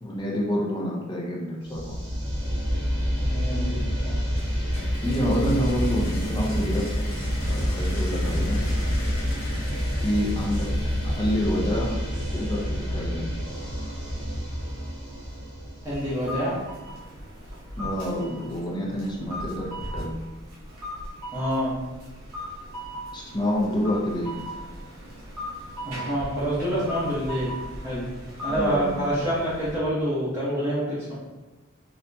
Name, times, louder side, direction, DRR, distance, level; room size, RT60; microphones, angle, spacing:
voice 1, 0.0-1.9 5.0-6.9 7.5-8.6 10.0-10.7 11.0-12.0 12.3-13.3 17.8-20.2 23.1-24.4 28.5-29.0, equal, 20° left, -4 dB, 0.6 m, -28 dB
sound 1, 1.7-16.5, equal, 60° right, 1.2 m, -28 dB
voice 2, 3.2-3.8 4.1-4.2 15.8-16.6 21.3-21.7 25.8-27.5 27.8-28.1 28.4-31.1, equal, 10° right, -12 dB, 0.8 m, -27 dB
sound 2, 4.4-12.1, left 1 dB, 70° left, 1.0 m, -39 dB
sound 3, 15.8-29.8, equal, 85° right, 0.8 m, -38 dB
3.9 x 2.8 x 2.2 m, 1.1 s
head